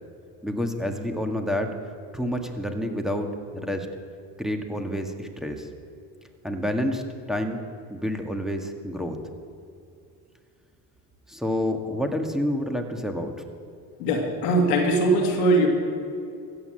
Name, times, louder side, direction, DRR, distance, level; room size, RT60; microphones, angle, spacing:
voice 1, 0.4-1.7 2.1-3.3 3.6-3.9 4.4-5.7 6.4-7.0 7.3-7.6 7.9-9.2 11.3-13.3, left 1 dB, ahead, 3 dB, 1.9 m, -28 dB
voice 2, 14.0-15.7, right 1 dB, 85° left, 1 dB, 2.4 m, -21 dB
15.0 x 8.2 x 7.8 m, 2.5 s
hypercardioid pair, 55°, 45 cm